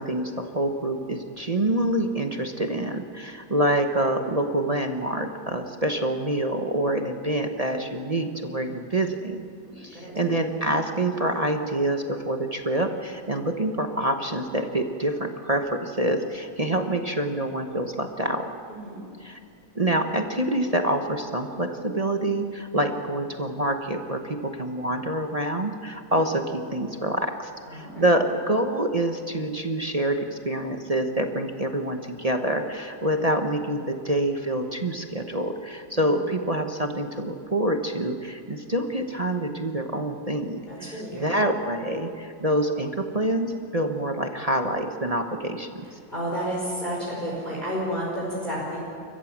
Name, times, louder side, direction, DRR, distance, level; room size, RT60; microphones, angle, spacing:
voice 1, 0.0-9.4 9.8-18.5 19.2-19.4 19.7-40.6 41.1-45.8, right 1 dB, 35° right, 4 dB, 0.6 m, -26 dB
voice 2, 9.7-10.4 18.7-19.0 27.7-28.1 36.0-36.2 40.7-41.4 46.1-48.8, equal, 20° left, -5 dB, 5.1 m, -31 dB
29.5 x 15.0 x 7.4 m, 2.4 s
omnidirectional pair, 2.2 m